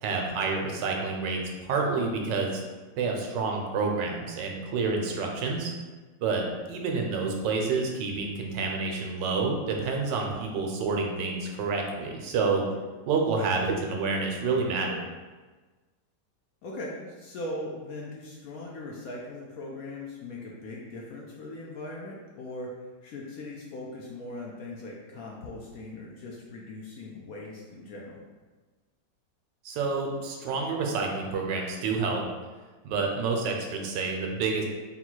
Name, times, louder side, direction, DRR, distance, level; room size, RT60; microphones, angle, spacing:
voice 1, 0.0-2.6 3.0-5.7 6.2-12.6 13.1-15.0 29.6-32.2 32.8-34.6, right 4 dB, 85° right, 1 dB, 1.3 m, -28 dB
voice 2, 16.6-22.7 23.0-28.2, left 2 dB, 70° left, -2 dB, 0.9 m, -40 dB
3.9 x 2.3 x 4.5 m, 1.3 s
omnidirectional pair, 1.9 m